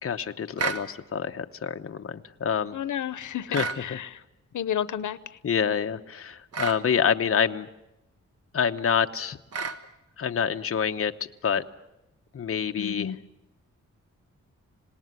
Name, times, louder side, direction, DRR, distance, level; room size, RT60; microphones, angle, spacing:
voice 1, 0.0-2.8 3.5-4.0 5.4-7.7 8.5-9.4 10.2-11.1 11.4-11.6 12.3-13.2, left 7 dB, 50° left, 6 dB, 0.9 m, -27 dB
sound 1, 0.6-0.9 3.5-3.8 6.5-6.8 9.5-9.8, right 5 dB, 55° right, 1.5 m, -30 dB
voice 2, 2.7-4.2 4.5-5.2 12.8-13.2, left 9 dB, 85° left, 15 dB, 0.9 m, -31 dB
26.5 x 19.0 x 9.6 m, 0.95 s
wide cardioid pair, 130°, 30 cm